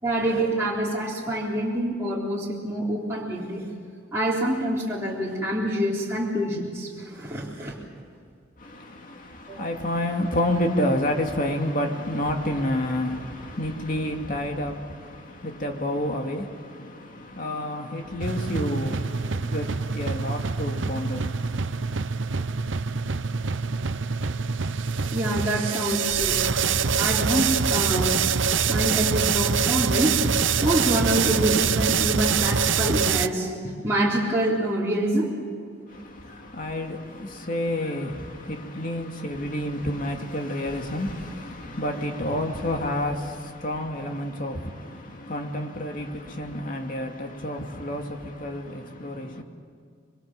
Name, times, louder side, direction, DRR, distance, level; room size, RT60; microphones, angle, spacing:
voice 1, 0.0-3.6 4.1-7.8 9.5-9.7 25.1-26.4 27.0-28.2 28.7-30.3 30.5-33.5 33.8-35.3, right 1 dB, 15° right, 3.7 m, -26 dB
voice 2, 8.6-22.0 35.9-49.4, left 1 dB, 45° left, 2.6 m, -29 dB
sound 1, 18.2-33.3, right 6 dB, 90° right, 0.8 m, -25 dB
26.0 x 24.5 x 7.5 m
head